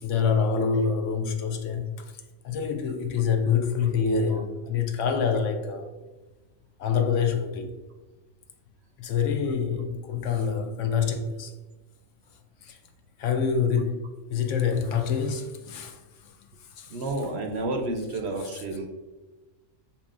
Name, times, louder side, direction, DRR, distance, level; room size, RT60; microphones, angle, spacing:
voice 1, 0.0-2.1 2.4-5.9 6.8-7.7 9.0-11.5 12.6-12.8 13.2-16.0 16.8-17.1 18.4-18.6, left 6 dB, 70° left, 0.9 m, -26 dB
voice 2, 16.9-18.9, right 2 dB, 65° right, 0.7 m, -30 dB
6.9 x 2.8 x 2.4 m
omnidirectional pair, 1.4 m